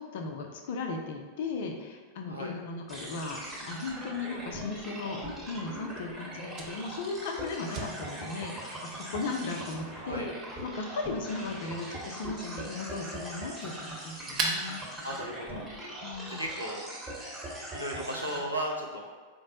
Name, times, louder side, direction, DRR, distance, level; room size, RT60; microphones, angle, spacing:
voice 1, 0.0-14.8 16.0-16.4, left 3 dB, 55° left, 3 dB, 0.4 m, -37 dB
sound 1, 2.9-18.4, right 1 dB, 10° right, 1.0 m, -41 dB
Fire, 4.4-15.9, right 3 dB, 35° right, 0.6 m, -43 dB
voice 2, 15.0-15.7 16.3-16.8 17.7-19.1, right 1 dB, 90° right, -2 dB, 0.5 m, -35 dB
4.3 x 2.0 x 2.8 m, 1.5 s
figure-of-eight pair, 90°, 0 cm